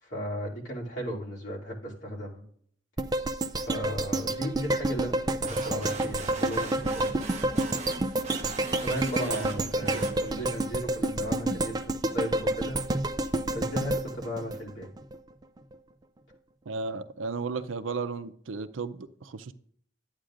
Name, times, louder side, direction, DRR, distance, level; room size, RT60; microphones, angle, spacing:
voice 1, 0.0-2.4 3.6-5.1 5.4-7.2 8.8-12.8 13.5-14.9, equal, 70° left, -4 dB, 2.9 m, -35 dB
sound 1, 3.0-15.2 15.6-15.7, right 2 dB, 20° right, 0.4 m, -29 dB
sound 2, 5.4-10.6, right 3 dB, 35° right, 0.9 m, -40 dB
voice 2, 9.3-10.0 10.4-10.5 16.7-19.5, right 4 dB, 85° right, 10 dB, 0.6 m, -35 dB
13.0 x 9.0 x 2.5 m, 0.63 s
head